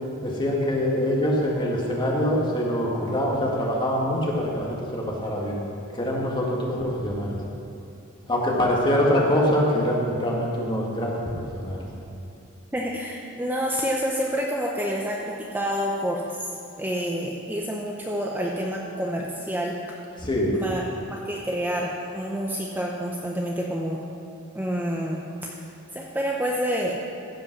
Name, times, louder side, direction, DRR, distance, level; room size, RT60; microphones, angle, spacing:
voice 1, 0.2-5.6 5.9-7.4 8.3-11.8 20.2-20.6, equal, 20° left, -3 dB, 1.8 m, -24 dB
voice 2, 12.7-16.5 16.8-19.8 20.6-20.8 21.1-24.0 24.5-25.2 25.9-26.9, equal, 10° right, -2 dB, 0.7 m, -28 dB
15.0 x 5.4 x 6.0 m, 2.8 s
head